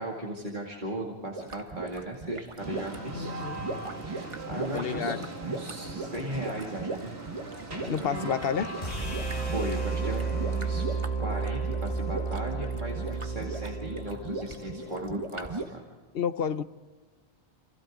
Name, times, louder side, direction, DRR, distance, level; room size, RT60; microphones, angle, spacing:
voice 1, 0.0-3.3 4.0-7.1 8.0-8.3 9.0-15.8, right 1 dB, 50° right, -2 dB, 2.7 m, -37 dB
sound 1, 1.4-15.7, right 3 dB, 30° right, 1.2 m, -38 dB
sound 2, 2.6-10.8, right 2 dB, 85° right, 2.5 m, -40 dB
voice 2, 3.1-3.6 4.7-5.3 7.9-8.8 16.1-16.6, left 7 dB, 65° left, 12 dB, 1.0 m, -30 dB
sound 3, 8.8-15.0, right 4 dB, 50° left, 7.2 m, -32 dB
29.0 x 28.0 x 3.8 m, 1.3 s
omnidirectional pair, 1.1 m